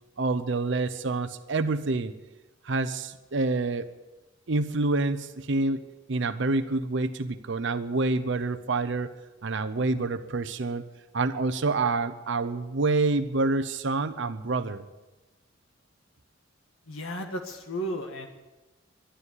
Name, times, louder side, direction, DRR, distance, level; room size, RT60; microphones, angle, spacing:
voice 1, 0.2-2.1 2.6-3.9 4.5-5.8 6.1-9.1 9.4-10.8 11.1-14.8, right 3 dB, 60° right, 11 dB, 0.7 m, -27 dB
voice 2, 16.9-18.3, equal, 85° left, 3 dB, 1.7 m, -34 dB
12.5 x 11.5 x 9.7 m, 1.1 s
head